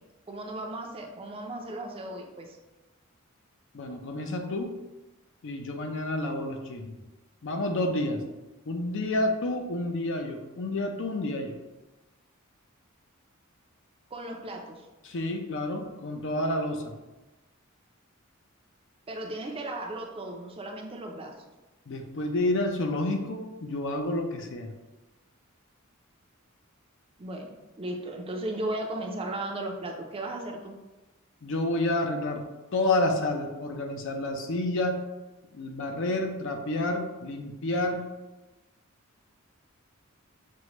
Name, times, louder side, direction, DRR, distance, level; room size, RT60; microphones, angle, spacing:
voice 1, 0.3-2.6 14.1-14.9 19.1-21.3 27.2-30.7, right 1 dB, 25° right, 1 dB, 0.5 m, -36 dB
voice 2, 3.7-4.7 5.4-6.9 7.4-8.2 8.7-11.6 15.0-16.9 21.9-24.7 31.4-32.4 32.7-35.0 35.5-38.1, left 2 dB, 60° left, 4 dB, 0.5 m, -29 dB
6.0 x 2.1 x 3.0 m, 1.1 s
head